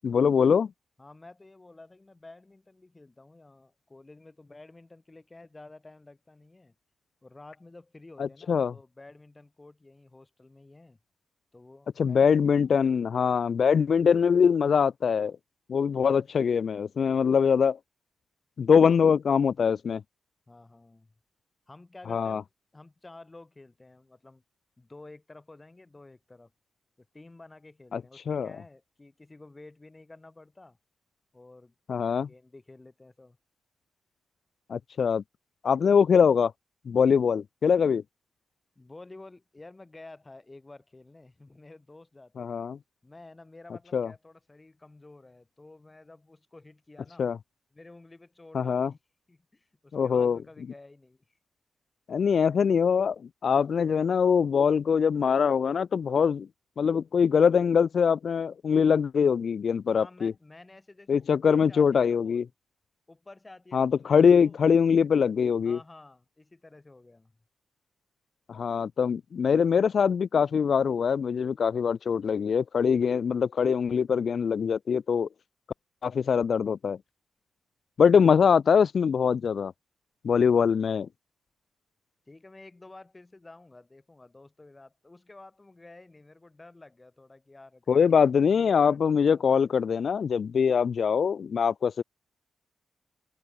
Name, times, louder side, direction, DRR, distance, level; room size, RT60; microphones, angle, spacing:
voice 1, 0.0-0.7 8.2-8.7 12.0-15.4 15.7-17.8 18.6-20.0 22.1-22.4 27.9-28.0 28.3-28.5 31.9-32.3 34.7-35.2 35.6-36.5 36.9-38.0 42.4-42.8 43.9-44.1 47.2-47.4 48.5-48.9 49.9-50.4 52.1-53.2 53.4-56.5 56.8-60.3 61.1-62.5 63.7-65.8 68.5-75.3 76.0-77.0 78.0-79.7 80.2-81.1 87.9-92.0, left 6 dB, 60° left, 0.4 m, -23 dB
voice 2, 1.0-6.7 7.2-11.0 11.5-12.4 20.5-21.1 21.7-24.4 24.8-26.5 27.0-30.8 31.3-31.7 32.0-33.4 38.8-42.6 43.0-47.3 47.7-49.0 49.3-51.4 59.9-62.5 63.1-64.6 65.6-67.3 82.3-89.7, left 2 dB, 25° left, 2.4 m, -51 dB
supercardioid pair, 45°, 0 cm